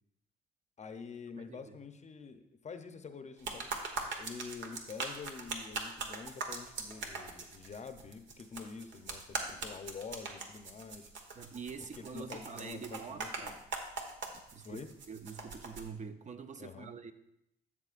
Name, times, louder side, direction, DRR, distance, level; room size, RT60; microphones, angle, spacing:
voice 1, 0.8-3.7 4.2-11.1 11.9-13.6 14.6-14.9 16.6-16.9, left 5 dB, 35° left, 8 dB, 0.7 m, -47 dB
voice 2, 1.3-1.8 11.4-13.6 14.5-17.1, right 5 dB, 40° right, 8 dB, 0.6 m, -46 dB
sound 1, 3.4-15.8, right 4 dB, 70° right, 1.2 m, -41 dB
12.0 x 7.3 x 2.5 m, 0.81 s
cardioid pair, 90°, 20 cm